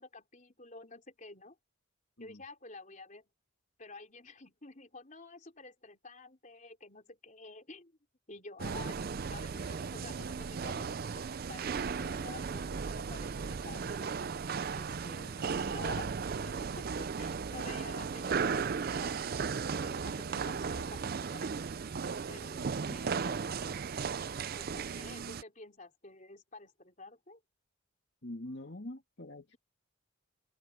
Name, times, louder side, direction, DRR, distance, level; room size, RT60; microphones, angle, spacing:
voice 1, 0.0-1.6 2.2-3.3 3.8-8.0 8.3-9.0 9.3-14.1 14.7-15.3 15.6-19.4 19.8-21.6 22.3-23.6 24.5-27.4 29.5-29.6, left 3 dB, 35° left, 4.2 m, -50 dB
sound 1, 8.6-25.4, right 5 dB, 45° right, 0.4 m, -36 dB
voice 2, 15.2-15.6 20.3-20.5 28.2-29.6, left 1 dB, 55° left, 2.5 m, -45 dB
open air
head